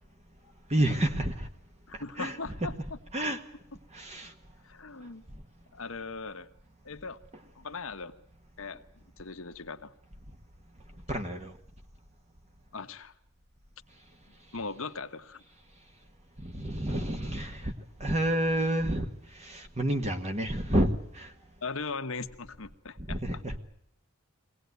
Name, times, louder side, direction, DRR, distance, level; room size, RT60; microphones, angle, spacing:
voice 1, 0.7-1.5 1.9-2.8 3.1-3.4 3.9-4.3 11.1-11.5 16.4-17.7 18.0-21.3 23.0-23.6, right 1 dB, 30° right, 1.5 m, -30 dB
voice 2, 1.9-3.0 4.6-5.2 5.7-6.5 6.8-7.2 7.5-8.1 8.6-9.9 12.7-13.1 14.3-15.4 21.6-23.2, left 4 dB, 65° left, 1.4 m, -39 dB
23.5 x 18.0 x 9.5 m
head